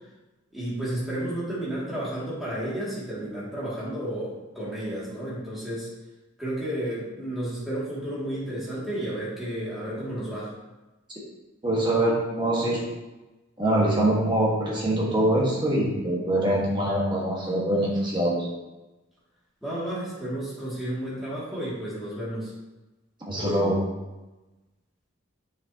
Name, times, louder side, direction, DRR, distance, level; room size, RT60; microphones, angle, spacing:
voice 1, 0.5-5.9 6.4-10.5 19.6-22.5, right 1 dB, ahead, -9 dB, 2.2 m, -32 dB
voice 2, 11.6-12.8 13.6-18.5 23.3-23.8, right 1 dB, 20° right, -4 dB, 1.4 m, -24 dB
7.2 x 6.4 x 2.8 m, 1.1 s
head